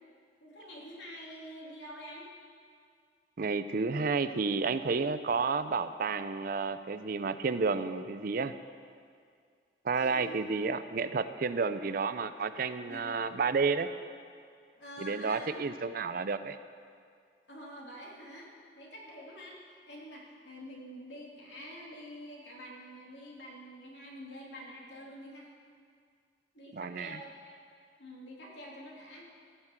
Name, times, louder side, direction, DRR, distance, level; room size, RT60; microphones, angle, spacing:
voice 1, 0.4-2.3 9.9-10.4 12.9-13.2 14.8-15.5 17.5-18.5 18.7-25.5 26.5-27.6 28.0-29.3, equal, 80° left, -3 dB, 2.8 m, -47 dB
voice 2, 3.4-8.5 9.8-13.9 15.0-16.6 26.7-27.2, right 4 dB, 55° right, 12 dB, 0.5 m, -31 dB
15.0 x 6.0 x 7.8 m, 2.2 s
head